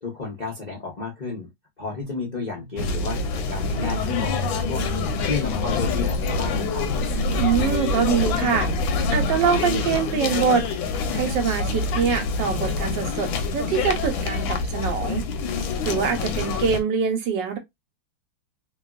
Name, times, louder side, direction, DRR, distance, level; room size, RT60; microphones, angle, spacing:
voice 1, 0.0-1.5 1.8-4.8 5.2-6.8 16.2-16.5, left 4 dB, 65° left, 0.4 m, -32 dB
sound 1, 2.0-9.6, right 1 dB, 20° right, 0.9 m, -44 dB
sound 2, 2.8-16.8, left 4 dB, 85° left, 1.4 m, -26 dB
sound 3, 5.1-9.3, left 2 dB, 50° right, 1.1 m, -30 dB
voice 2, 7.4-8.7 9.1-10.6 11.1-15.2 15.8-17.6, right 7 dB, 75° right, 1.4 m, -24 dB
3.3 x 2.3 x 2.3 m
omnidirectional pair, 2.1 m